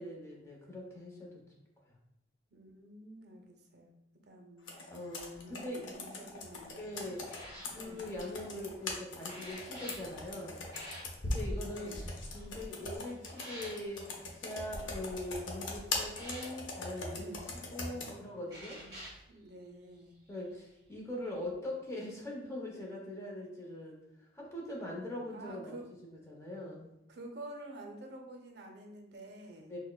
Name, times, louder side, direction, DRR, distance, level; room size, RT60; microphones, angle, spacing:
voice 1, 0.0-1.4 4.9-6.0 6.8-7.3 7.7-10.6 11.2-11.9 12.3-14.1 14.3-18.8 20.3-24.0 24.3-25.8 26.0-26.9 29.7-29.8, left 1 dB, 15° left, -2 dB, 0.7 m, -42 dB
voice 2, 2.5-3.9 4.3-4.7 5.4-5.6 5.9-7.1 7.7-8.1 11.6-12.1 17.1-17.5 17.9-19.0 19.3-20.1 25.2-25.9 27.1-29.8, right 1 dB, 60° right, 2 dB, 0.5 m, -50 dB
Computer keyboard, 4.7-18.2, left 2 dB, 90° left, 0.7 m, -41 dB
sound 1, 6.2-14.7 15.1-15.5 16.1-16.5 17.8-17.9 18.5-19.2 20.2-20.3 21.3-21.5, equal, 20° right, 1.2 m, -51 dB
6.1 x 2.1 x 2.2 m, 0.85 s
head